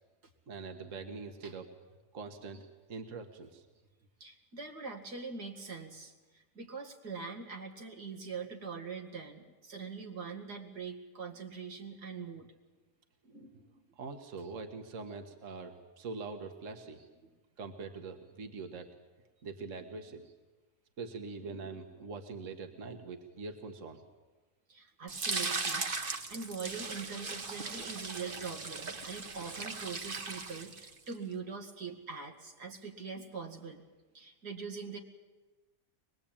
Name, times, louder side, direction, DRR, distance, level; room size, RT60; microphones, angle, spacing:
voice 1, 0.5-1.7 2.1-2.6 2.9-3.6 13.3-13.6 14.0-17.0 17.6-18.9 19.4-20.3 21.0-24.0 33.2-33.3, right 4 dB, 55° right, 6 dB, 1.8 m, -43 dB
voice 2, 4.2-12.5 17.2-17.3 24.7-33.8 34.1-35.0, right 5 dB, 85° right, 2 dB, 2.8 m, -43 dB
sound 1, 25.1-31.1, right 3 dB, 35° right, 1.3 m, -38 dB
23.5 x 20.5 x 8.8 m, 1.2 s
omnidirectional pair, 1.7 m